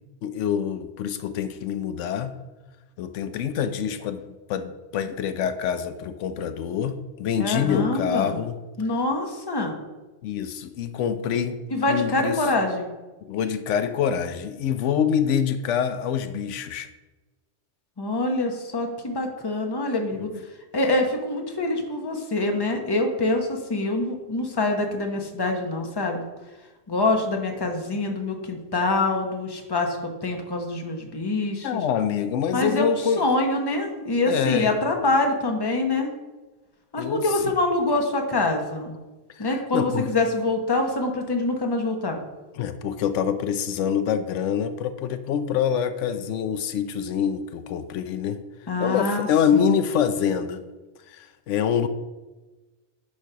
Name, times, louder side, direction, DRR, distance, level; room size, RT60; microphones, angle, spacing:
voice 1, 0.2-2.4 3.0-4.2 4.5-8.6 10.2-12.4 13.2-16.9 20.2-20.4 31.6-33.3 34.3-34.7 37.0-37.4 39.3-40.1 42.6-48.4 48.8-50.6 51.1-51.9, left 8 dB, 85° left, 10 dB, 0.9 m, -26 dB
voice 2, 7.4-8.4 8.8-9.7 11.7-12.9 18.0-20.3 20.7-26.2 26.9-31.8 32.5-36.1 36.9-38.9 39.4-42.2 48.7-49.8, left 2 dB, 20° left, 3 dB, 0.9 m, -25 dB
9.8 x 3.3 x 5.5 m, 1.2 s
omnidirectional pair, 1.2 m